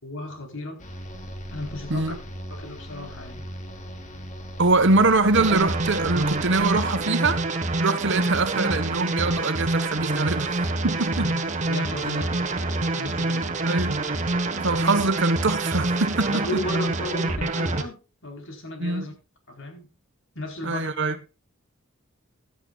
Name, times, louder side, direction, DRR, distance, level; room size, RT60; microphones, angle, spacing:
voice 1, 0.0-0.8 1.5-2.1 2.5-3.4 11.2-13.5 16.3-19.1 19.5-19.9 20.3-20.9, left 1 dB, 65° left, 4.5 m, -35 dB
sound 1, 0.8-7.1, equal, 40° left, 2.8 m, -39 dB
voice 2, 4.6-7.5 7.8-10.6 10.8-11.3 13.6-14.0 14.6-16.5 18.8-19.1 20.6-21.2, right 3 dB, 60° right, 1.4 m, -23 dB
sound 2, 5.3-17.8, right 2 dB, 35° right, 1.6 m, -26 dB
16.0 x 12.0 x 2.5 m
head